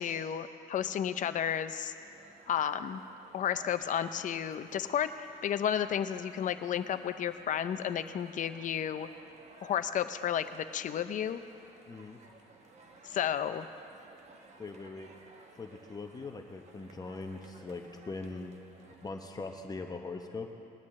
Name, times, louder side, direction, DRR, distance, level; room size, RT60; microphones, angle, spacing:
voice 1, 0.0-1.9 2.5-3.0 3.3-9.1 9.6-11.4 13.0-13.7, left 9 dB, 50° left, 11 dB, 0.6 m, -32 dB
sound 1, 2.0-19.1, right 3 dB, 40° right, 1.4 m, -56 dB
voice 2, 11.9-12.2 14.6-15.1 15.6-18.5 19.0-20.5, left 3 dB, 20° left, 3 dB, 0.9 m, -41 dB
20.5 x 11.0 x 3.2 m, 2.6 s
cardioid pair, 110°, 17 cm